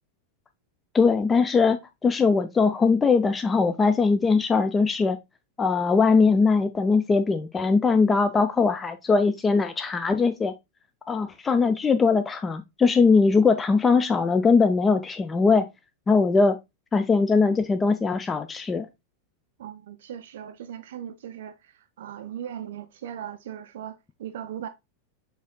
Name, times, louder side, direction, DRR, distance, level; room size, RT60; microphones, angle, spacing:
voice 1, 0.9-5.2 5.6-10.5 11.1-15.7 16.1-16.6 16.9-18.9, left 4 dB, 15° left, 0.3 m, -21 dB
voice 2, 19.6-24.7, right 10 dB, 55° right, 0.4 m, -38 dB
6.2 x 3.5 x 2.2 m
figure-of-eight pair, 90°, 0 cm